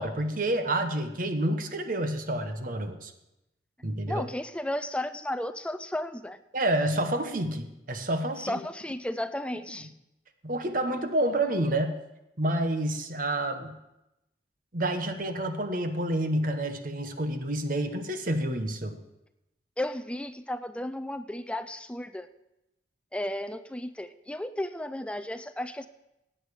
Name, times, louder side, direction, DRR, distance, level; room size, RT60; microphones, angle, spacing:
voice 1, 0.0-3.1 3.8-4.2 6.5-8.6 9.5-9.6 10.4-12.0 12.4-13.8 14.7-19.0, right 1 dB, 50° right, 7 dB, 1.1 m, -29 dB
voice 2, 4.1-6.4 8.4-9.9 19.8-22.3 23.1-25.9, left 1 dB, 5° left, 12 dB, 0.4 m, -34 dB
16.5 x 9.1 x 4.8 m, 0.91 s
head